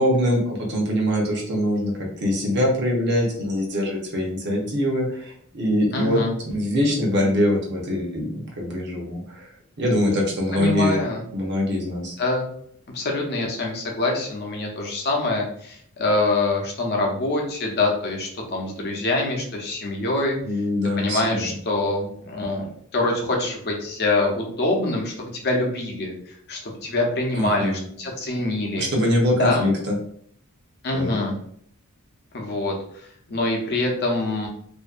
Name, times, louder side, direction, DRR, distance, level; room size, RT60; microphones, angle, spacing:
voice 1, 0.0-9.5 9.8-11.0 11.3-12.2 20.4-21.5 27.3-27.8 28.8-30.0 30.9-31.1, left 1 dB, 50° right, -1 dB, 0.8 m, -23 dB
voice 2, 5.9-6.3 10.5-11.2 12.2-12.5 12.9-20.4 21.0-22.7 22.9-28.9 29.4-29.7 30.8-31.3 32.3-34.5, left 2 dB, 50° left, 0 dB, 0.6 m, -25 dB
2.5 x 2.2 x 2.4 m, 0.65 s
head